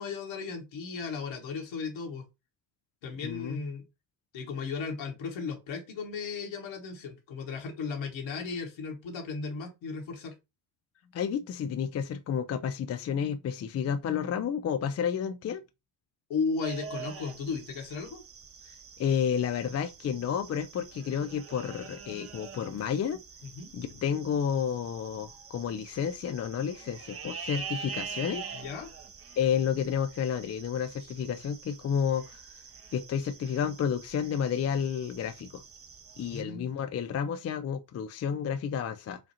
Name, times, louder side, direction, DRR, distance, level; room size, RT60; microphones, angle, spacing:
voice 1, 0.0-2.2 3.0-3.8 4.3-10.3 16.3-18.2 23.4-23.7 28.5-28.9 36.2-36.7, left 5 dB, 65° left, 1.6 m, -35 dB
voice 2, 3.2-3.6 11.1-15.6 19.0-23.2 23.7-28.5 29.4-32.4 32.9-35.6 36.2-39.2, left 8 dB, 35° left, 0.4 m, -31 dB
sound 1, 16.6-36.4, right 6 dB, 30° right, 0.7 m, -45 dB
5.0 x 2.5 x 2.7 m
hypercardioid pair, 55°, 50 cm